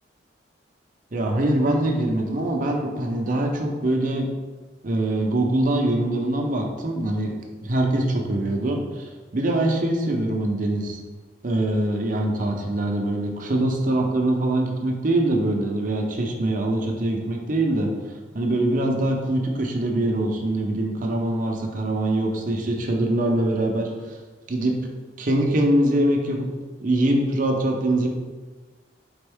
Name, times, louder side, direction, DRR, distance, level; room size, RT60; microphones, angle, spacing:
voice 1, 1.1-4.3 4.8-7.3 7.6-11.0 11.4-17.9 18.3-23.9 24.5-24.7 25.2-26.5 26.8-28.1, right 1 dB, 50° right, 1 dB, 0.7 m, -23 dB
4.3 x 3.5 x 3.5 m, 1.3 s
head